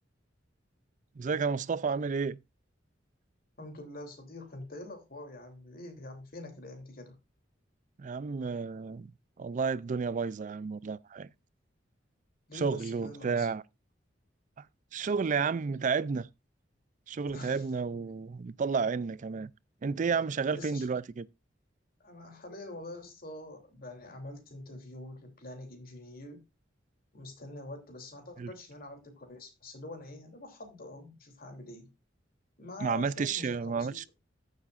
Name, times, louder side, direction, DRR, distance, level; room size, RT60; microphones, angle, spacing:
voice 1, 1.2-2.4 8.0-9.1 9.4-11.3 12.5-13.6 14.9-16.3 17.1-19.5 19.8-21.3 28.4-28.5 32.8-34.1, right 5 dB, 40° right, 0.4 m, -31 dB
voice 2, 3.6-7.2 12.5-13.5 17.3-17.6 20.5-20.8 22.0-26.4 27.1-31.9 32.6-34.0, left 2 dB, 50° left, 3.0 m, -45 dB
14.0 x 7.5 x 2.5 m
head